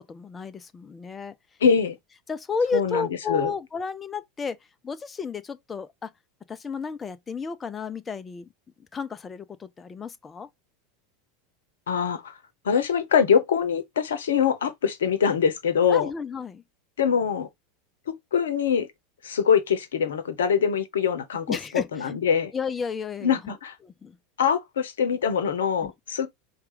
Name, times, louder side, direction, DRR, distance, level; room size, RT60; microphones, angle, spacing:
voice 1, 0.0-1.3 2.3-4.6 4.8-6.1 6.5-8.5 8.9-10.5 15.9-16.6 21.5-22.1 22.5-23.5 23.8-24.2 25.8-25.9, left 5 dB, 25° left, 0.6 m, -32 dB
voice 2, 1.6-1.9 2.7-3.5 11.9-12.3 12.6-16.1 17.0-17.5 18.3-18.9 19.2-22.5 23.2-23.7 24.4-26.3, left 7 dB, 75° left, 0.8 m, -23 dB
4.5 x 2.4 x 3.1 m
hypercardioid pair, 85°, 0 cm